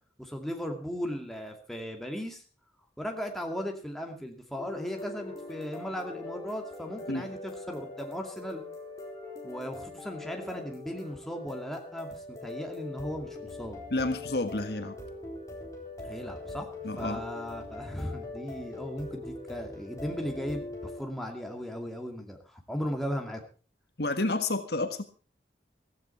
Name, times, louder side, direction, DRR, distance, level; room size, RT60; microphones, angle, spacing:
voice 1, 0.2-2.4 3.0-8.6 9.4-13.8 16.0-23.4, equal, ahead, 2 dB, 2.4 m, -37 dB
sound 1, 4.6-21.0, left 2 dB, 20° left, 4.2 m, -42 dB
voice 2, 13.9-15.0 16.8-17.2 24.0-25.0, left 2 dB, 65° left, 8 dB, 1.6 m, -30 dB
15.5 x 15.5 x 4.4 m, 0.35 s
head